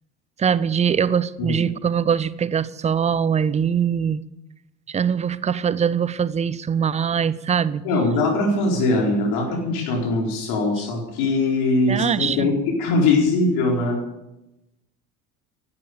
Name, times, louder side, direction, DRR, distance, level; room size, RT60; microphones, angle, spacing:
voice 1, 0.4-4.2 4.9-7.8 11.9-12.5, right 7 dB, 15° right, 19 dB, 0.6 m, -22 dB
voice 2, 7.8-14.0, left 2 dB, 55° left, 1 dB, 4.4 m, -21 dB
15.5 x 12.0 x 6.7 m, 0.91 s
figure-of-eight pair, 65°, 43 cm